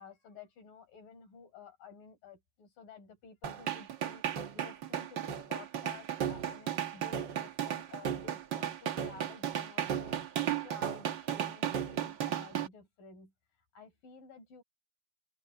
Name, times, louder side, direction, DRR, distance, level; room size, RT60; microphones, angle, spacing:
voice 1, 0.0-13.3 13.7-14.6, left 5 dB, 70° left, 6.4 m, -53 dB
sound 1, 3.4-12.7, right 9 dB, 85° right, 1.0 m, -35 dB
omnidirectional pair, 4.1 m